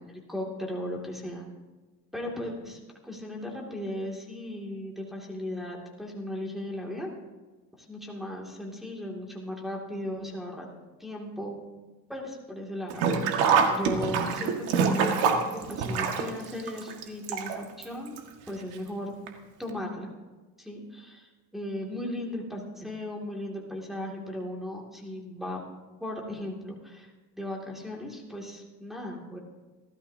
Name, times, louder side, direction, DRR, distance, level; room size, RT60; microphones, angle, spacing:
voice 1, 0.0-1.5 2.1-7.1 7.8-10.7 11.0-11.6 12.1-13.1 13.4-15.0 15.5-18.2 18.5-19.1 19.6-20.1 20.6-25.6 26.0-29.4, left 1 dB, ahead, -3 dB, 2.4 m, -37 dB
Sink (filling or washing), 12.9-17.8 18.2-18.3 19.3-19.4 19.7-19.8, right 6 dB, 80° right, 1.9 m, -25 dB
27.0 x 13.0 x 2.8 m, 1.3 s
cardioid pair, 135°, 38 cm